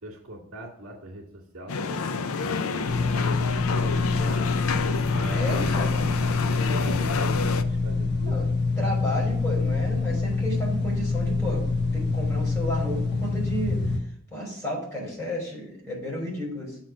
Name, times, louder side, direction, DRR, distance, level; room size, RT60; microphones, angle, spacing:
voice 1, 0.0-4.5 5.1-8.5, right 1 dB, 65° right, -3 dB, 2.2 m, -42 dB
sound 1, 1.7-7.6, left 5 dB, 65° left, 0.5 m, -29 dB
sound 2, 2.9-14.0, left 3 dB, 50° left, 1.1 m, -26 dB
voice 2, 5.3-6.2 8.3-8.5 8.8-11.6 11.9-13.8 14.3-16.8, equal, 10° left, -3 dB, 3.7 m, -32 dB
7.8 x 4.4 x 6.1 m, 0.71 s
head